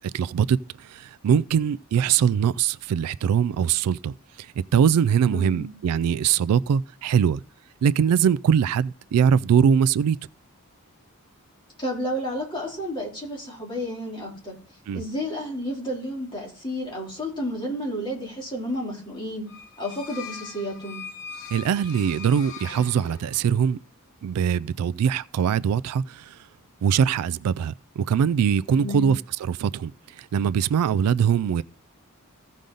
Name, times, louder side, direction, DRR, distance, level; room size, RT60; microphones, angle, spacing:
voice 1, 0.1-0.6 0.9-4.1 4.7-7.4 7.8-10.2 14.9-15.0 21.5-23.8 24.2-26.2 26.8-29.9 30.2-31.6, right 7 dB, 85° right, 0.3 m, -22 dB
voice 2, 5.3-5.7 11.8-14.6 14.9-19.4 19.8-21.0 28.8-29.1, equal, 20° left, 3.4 m, -31 dB
sound 1, 19.5-23.6, left 6 dB, 60° left, 1.2 m, -41 dB
15.5 x 5.2 x 3.9 m
head